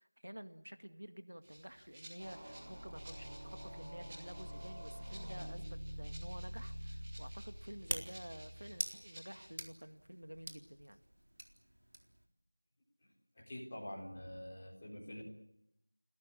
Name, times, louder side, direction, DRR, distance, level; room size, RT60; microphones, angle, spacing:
voice 1, 0.0-11.0, equal, 85° right, 10 dB, 1.9 m, -51 dB
Rattle (instrument), 1.4-9.5, right 1 dB, 10° right, 3.4 m, -57 dB
sound 1, 2.2-8.7, equal, 45° right, 4.6 m, -46 dB
sound 2, 6.0-12.3, right 1 dB, 70° right, 4.0 m, -47 dB
voice 2, 13.3-15.2, left 1 dB, 15° left, -4 dB, 4.3 m, -46 dB
30.0 x 17.5 x 8.7 m, 0.81 s
figure-of-eight pair, 180°, 0 cm